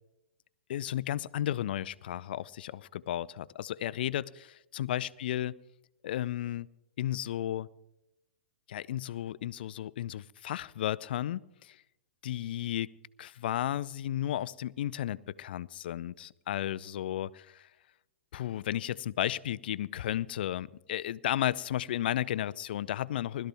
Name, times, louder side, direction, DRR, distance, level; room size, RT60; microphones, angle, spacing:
voice 1, 0.7-5.6 6.0-6.7 7.0-7.7 8.7-11.8 12.2-12.9 13.2-17.7 18.3-23.5, left 12 dB, 65° left, 20 dB, 0.5 m, -33 dB
20.5 x 13.0 x 3.5 m, 0.88 s
hypercardioid pair, 115°, 6 cm